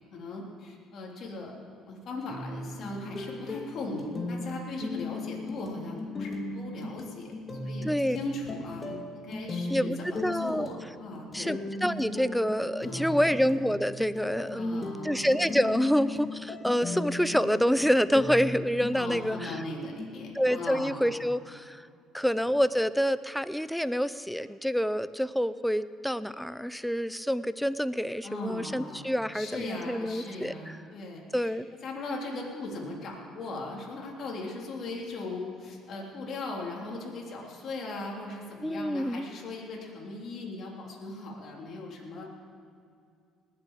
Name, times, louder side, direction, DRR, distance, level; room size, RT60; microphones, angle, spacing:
voice 1, 0.1-1.5 1.8-7.3 7.6-11.5 12.8-13.3 14.5-15.3 18.9-21.2 22.2-22.3 28.2-31.5 31.8-42.4, left 2 dB, 55° left, -1 dB, 3.3 m, -39 dB
sound 1, 2.3-20.2, left 2 dB, 30° left, 2.2 m, -38 dB
voice 2, 7.8-8.2 9.7-10.7 11.3-19.6 20.3-21.9 22.1-30.8 31.3-31.7 38.6-39.3, equal, ahead, 15 dB, 0.5 m, -27 dB
19.5 x 7.7 x 7.5 m, 2.3 s
supercardioid pair, 85°, 0 cm